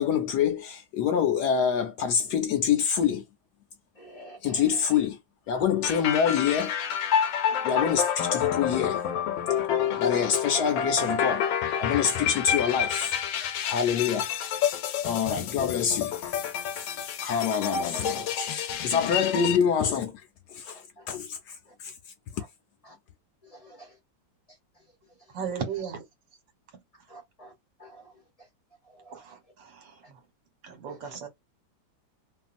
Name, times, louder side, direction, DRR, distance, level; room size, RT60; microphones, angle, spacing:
voice 1, 0.0-3.2 4.4-5.2 5.5-6.7 7.6-9.0 10.0-11.5 11.8-13.2 13.6-14.3 15.0-16.3 16.7-17.0 17.2-20.1 20.5-21.9, left 7 dB, 70° left, 1.0 m, -26 dB
voice 2, 4.0-4.6 7.5-7.6 9.8-10.1 12.2-12.3 21.1-21.2 23.5-23.9 27.1-27.5 27.8-28.0 29.1-29.2 30.8-31.1, right 1 dB, 25° left, 1.0 m, -47 dB
sound 1, 5.8-19.6, left 8 dB, 85° left, 1.3 m, -28 dB
voice 3, 25.3-26.0 29.1-29.8 30.6-31.3, right 7 dB, 75° right, 1.6 m, -35 dB
2.9 x 2.6 x 2.4 m
omnidirectional pair, 2.0 m